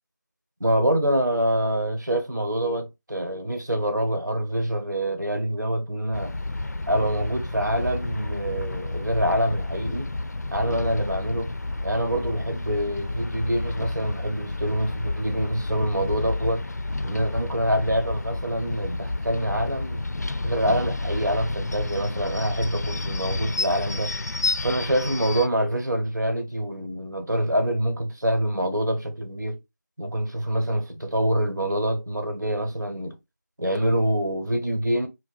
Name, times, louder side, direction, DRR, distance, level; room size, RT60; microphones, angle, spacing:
voice 1, 0.6-6.4 6.9-10.1 10.5-11.5 11.8-16.6 17.0-20.0 20.4-24.1 24.6-29.6 30.0-33.2 33.6-35.1, equal, 85° right, 1.1 m, -26 dB
sound 1, 6.1-25.5, left 2 dB, 60° left, 0.4 m, -30 dB
2.6 x 2.1 x 3.9 m
figure-of-eight pair, 175°, 10 cm